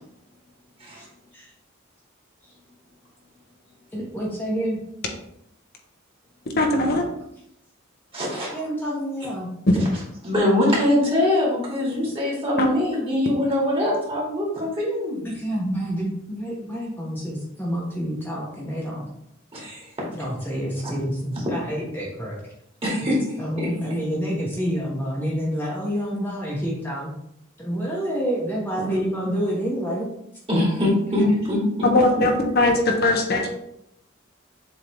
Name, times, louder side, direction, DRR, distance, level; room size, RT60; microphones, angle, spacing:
voice 1, 3.9-4.8 8.3-9.5 15.2-19.1 20.1-22.4 23.4-27.1 27.6-30.1, equal, 10° left, -5 dB, 1.1 m, -28 dB
voice 2, 6.6-7.0 12.6-12.7 31.9-33.5, left 2 dB, 55° left, 2 dB, 0.9 m, -20 dB
voice 3, 8.1-8.6 10.2-15.3 19.5-19.9 22.8-23.2 23.6-23.7 30.5-32.3, left 1 dB, 30° right, -5 dB, 2.4 m, -23 dB
7.4 x 3.7 x 3.4 m, 0.76 s
head